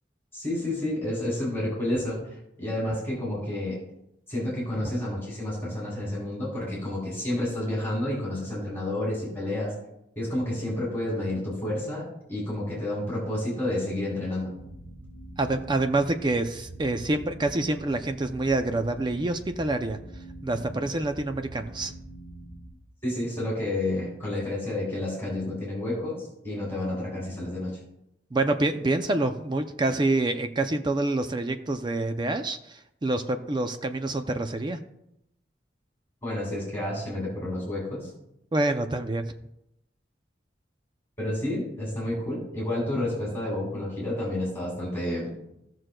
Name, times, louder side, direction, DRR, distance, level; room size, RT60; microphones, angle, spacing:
voice 1, 0.3-3.8 4.3-9.7 10.1-14.5 23.0-27.8 36.2-38.1 41.2-45.3, left 1 dB, 15° left, -5 dB, 3.1 m, -30 dB
sound 1, 14.6-22.7, right 1 dB, 60° right, 1.3 m, -44 dB
voice 2, 15.4-20.0 20.4-21.9 28.3-34.8 38.5-39.3, right 2 dB, 25° right, 7 dB, 0.4 m, -27 dB
16.0 x 6.2 x 2.2 m, 0.81 s
head